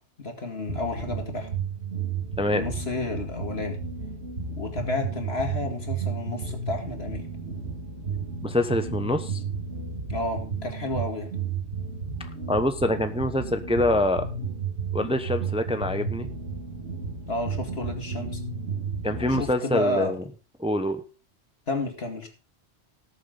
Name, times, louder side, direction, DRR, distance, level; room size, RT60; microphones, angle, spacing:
voice 1, 0.2-1.5 2.5-3.8 4.5-7.3 10.1-11.3 17.3-18.4 19.2-20.1 21.7-22.3, left 2 dB, 65° left, 4 dB, 2.6 m, -31 dB
sound 1, 0.7-19.5, right 5 dB, 90° right, 2.6 m, -33 dB
voice 2, 2.4-2.7 8.4-9.4 12.5-14.3 14.9-16.3 19.0-20.2 20.6-21.0, left 1 dB, 5° right, 9 dB, 0.8 m, -25 dB
18.5 x 7.1 x 3.9 m, 0.34 s
omnidirectional pair, 1.1 m